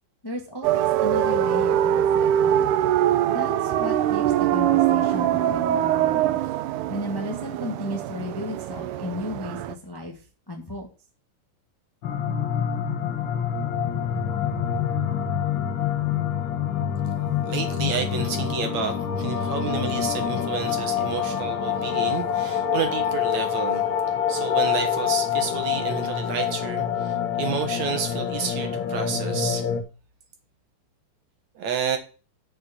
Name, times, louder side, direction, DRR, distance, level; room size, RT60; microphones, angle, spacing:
voice 1, 0.2-2.7 3.3-6.4 6.9-10.9, left 1 dB, 15° left, 0.8 m, -34 dB
sound 1, 0.6-9.7, right 11 dB, 75° right, 2.0 m, -23 dB
sound 2, 12.0-29.8, left 8 dB, 65° left, 1.2 m, -26 dB
voice 2, 17.4-23.9 24.3-29.7 31.6-32.0, right 6 dB, 60° right, 2.5 m, -30 dB
6.8 x 6.6 x 6.9 m
omnidirectional pair, 4.0 m